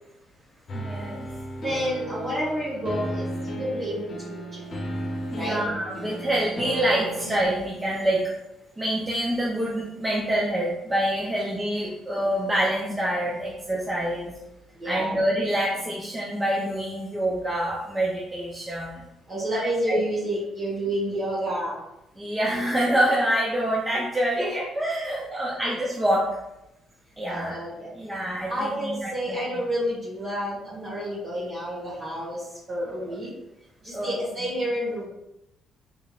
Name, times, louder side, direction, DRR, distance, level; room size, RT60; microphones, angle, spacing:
sound 1, 0.7-7.4, right 1 dB, 45° left, 0.8 m, -34 dB
voice 1, 0.7-1.3 5.3-8.2 8.8-14.3 14.8-19.0 19.5-19.6 19.9-20.0 21.1-21.2 22.2-26.4 27.2-27.6 28.0-29.4 33.9-34.2, right 1 dB, 15° right, -4 dB, 0.6 m, -26 dB
voice 2, 1.6-4.4 5.3-5.6 14.8-15.1 19.3-21.7 24.4-24.5 25.0-25.4 27.3-27.9 28.5-32.4 32.7-33.3 33.8-35.1, equal, 35° right, -7 dB, 1.4 m, -29 dB
3.7 x 3.7 x 2.4 m, 0.90 s
cardioid pair, 130°, 0 cm